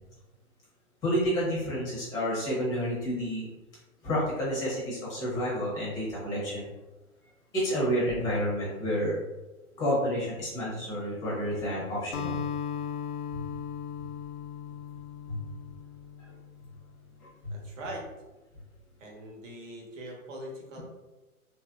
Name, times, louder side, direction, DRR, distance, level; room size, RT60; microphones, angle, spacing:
voice 1, 1.0-3.5 4.0-6.7 7.5-9.2 9.8-12.4 13.3-13.4 15.3-15.4 17.2-17.5, equal, 10° left, -6 dB, 0.6 m, -30 dB
Acoustic guitar, 12.1-16.6, left 8 dB, 85° left, 0.5 m, -37 dB
voice 2, 17.5-18.1 19.0-20.8, right 1 dB, 60° right, -1 dB, 1.1 m, -41 dB
3.1 x 2.6 x 2.3 m, 1.1 s
hypercardioid pair, 140°, 43 cm